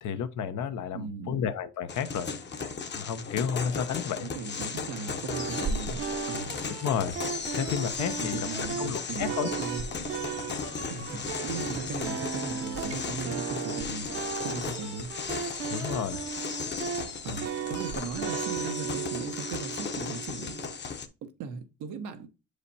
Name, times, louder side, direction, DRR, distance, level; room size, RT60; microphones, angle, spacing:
voice 1, 0.0-2.3 2.9-4.3 6.8-7.2 7.5-8.4 8.8-9.5 15.7-16.3, left 7 dB, 75° left, 0.8 m, -31 dB
voice 2, 0.9-1.4 4.3-6.5 8.2-9.9 10.9-14.1 14.4-15.1 17.2-20.5 21.2-22.3, right 5 dB, 85° right, 1.0 m, -38 dB
sound 1, 1.9-21.1, left 5 dB, 35° left, 0.8 m, -36 dB
sound 2, 5.3-20.8, right 6 dB, 50° right, 0.8 m, -36 dB
7.2 x 4.9 x 2.7 m
cardioid pair, 90°, 30 cm